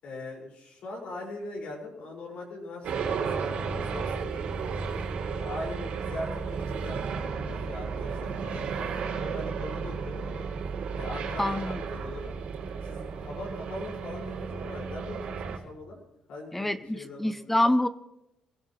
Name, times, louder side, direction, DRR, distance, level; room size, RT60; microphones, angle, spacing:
voice 1, 0.0-4.5 5.2-10.5 10.9-12.3 12.8-16.0 16.3-17.6, left 2 dB, 65° left, -2 dB, 5.7 m, -41 dB
sound 1, 2.8-15.6, right 5 dB, 75° right, 3.1 m, -33 dB
voice 2, 11.4-11.8 16.5-17.9, left 1 dB, 10° left, 13 dB, 0.6 m, -26 dB
25.0 x 16.0 x 3.2 m, 0.86 s
cardioid pair, 120°, 2 cm